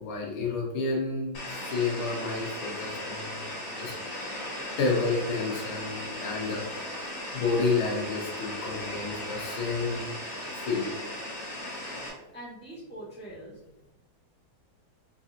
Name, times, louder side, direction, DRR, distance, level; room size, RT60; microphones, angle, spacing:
voice 1, 0.0-3.9 4.8-6.9 7.3-10.1 10.5-10.9, left 4 dB, 90° left, -2 dB, 1.9 m, -30 dB
sound 1, 1.3-12.1, left 1 dB, 45° left, 1.0 m, -37 dB
voice 2, 12.3-13.6, right 1 dB, 5° left, -7 dB, 1.0 m, -43 dB
4.5 x 2.5 x 2.8 m, 0.98 s
omnidirectional pair, 2.3 m